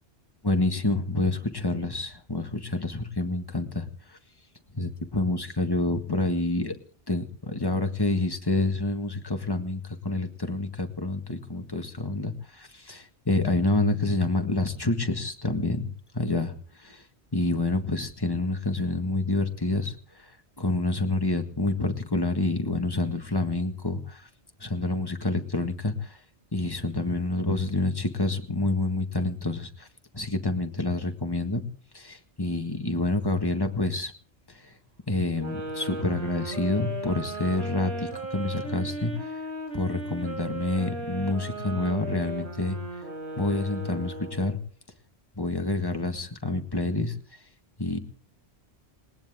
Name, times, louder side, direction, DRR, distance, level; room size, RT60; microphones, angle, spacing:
voice 1, 0.4-3.9 4.7-6.7 7.1-15.8 16.1-16.5 16.8-17.0 17.3-20.0 20.6-24.3 24.6-26.2 26.5-29.9 30.1-31.6 31.9-34.1 35.1-39.1 39.7-42.8 43.4-44.6 45.4-47.2 47.8-48.0, left 2 dB, 20° left, 6 dB, 1.7 m, -28 dB
sound 1, 35.4-44.6, right 2 dB, 75° right, 4.5 m, -36 dB
20.0 x 19.5 x 3.7 m, 0.43 s
omnidirectional pair, 1.1 m